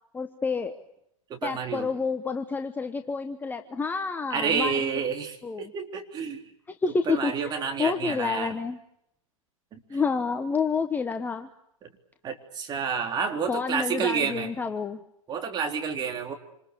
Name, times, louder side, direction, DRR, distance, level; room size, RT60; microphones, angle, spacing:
voice 1, 0.1-0.8 1.4-5.0 5.4-5.7 6.7-8.8 9.9-11.5 13.5-15.0, left 5 dB, 10° left, 8 dB, 1.1 m, -29 dB
voice 2, 1.3-1.9 4.3-6.4 7.1-8.5 9.7-9.8 12.2-14.5 15.3-16.3, right 6 dB, 25° right, 3 dB, 3.7 m, -29 dB
27.5 x 27.5 x 6.9 m, 0.79 s
hypercardioid pair, 120°, 18 cm